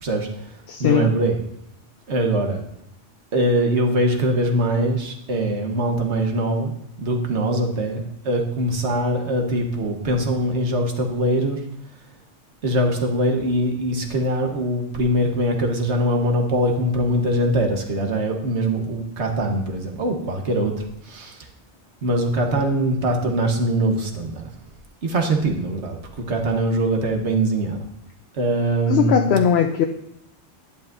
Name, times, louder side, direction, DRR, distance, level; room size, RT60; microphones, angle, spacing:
voice 1, 0.0-1.4 2.1-2.6 3.3-6.7 7.0-11.6 12.6-20.7 21.0-21.5 22.0-24.5 25.0-27.8 28.4-29.3, right 1 dB, 75° right, 3 dB, 1.5 m, -22 dB
voice 2, 0.7-1.1 28.9-29.9, left 8 dB, 70° left, 5 dB, 0.8 m, -19 dB
10.5 x 10.0 x 2.6 m, 0.77 s
omnidirectional pair, 1.2 m